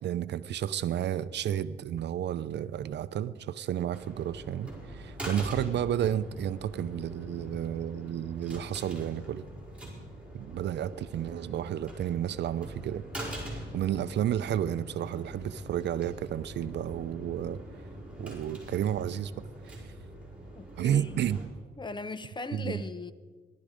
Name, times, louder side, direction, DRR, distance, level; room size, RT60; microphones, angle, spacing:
voice 1, 0.0-9.4 10.3-13.0 13.4-17.6 18.2-19.8 20.8-21.4 22.5-22.8, right 10 dB, 60° right, 0.6 m, -32 dB
sound 1, 3.9-21.5, right 1 dB, 5° right, 5.0 m, -43 dB
voice 2, 20.5-21.2 21.8-23.1, left 3 dB, 25° left, 0.7 m, -39 dB
18.0 x 12.0 x 5.1 m
cardioid pair, 90°, 20 cm